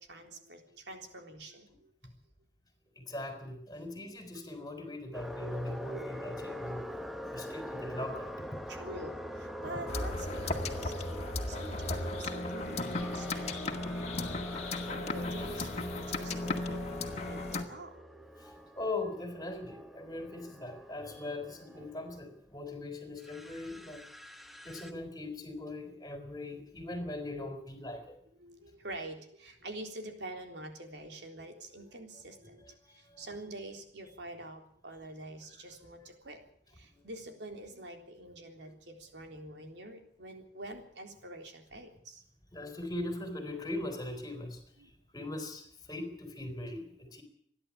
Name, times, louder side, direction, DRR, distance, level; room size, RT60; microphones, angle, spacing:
voice 1, 0.0-1.9 8.7-17.9 21.7-21.9 28.4-36.4 36.7-42.2 44.8-44.9, right 1 dB, 75° right, 4 dB, 3.7 m, -46 dB
voice 2, 3.0-6.9 7.3-8.6 18.4-24.0 24.6-28.1 32.6-33.3 36.9-37.0 42.5-47.2, left 2 dB, 20° left, 7 dB, 4.1 m, -40 dB
sound 1, 5.1-22.3 23.2-24.9, left 1 dB, ahead, 1.2 m, -43 dB
sound 2, 9.9-17.6, left 2 dB, 40° left, 2.0 m, -36 dB
27.5 x 11.0 x 8.7 m, 0.66 s
head